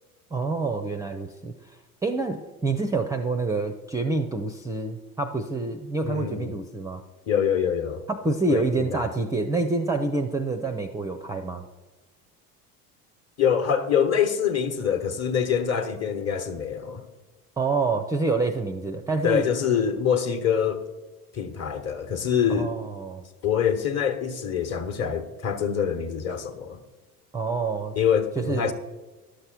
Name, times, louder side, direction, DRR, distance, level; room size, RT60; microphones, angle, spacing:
voice 1, 0.3-1.8 2.0-7.0 8.1-11.6 17.6-19.4 22.5-23.2 27.3-27.9 28.4-28.7, right 3 dB, 10° right, 0.4 m, -27 dB
voice 2, 6.0-6.5 7.3-8.0 8.5-9.1 13.4-17.0 19.2-20.8 21.3-22.8 23.4-26.8 27.9-28.7, left 8 dB, 35° left, 1.1 m, -25 dB
11.5 x 6.6 x 6.0 m
figure-of-eight pair, 65°, 45 cm